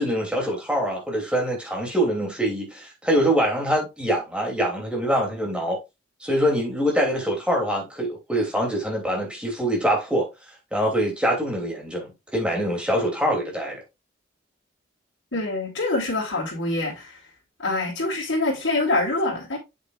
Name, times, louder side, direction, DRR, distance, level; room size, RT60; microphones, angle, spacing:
voice 1, 0.0-5.8 6.2-10.3 10.7-13.8, equal, 5° right, 2.9 m, -24 dB
voice 2, 15.3-17.2 17.6-19.6, left 2 dB, 65° left, 3.5 m, -25 dB
8.1 x 7.3 x 2.5 m
head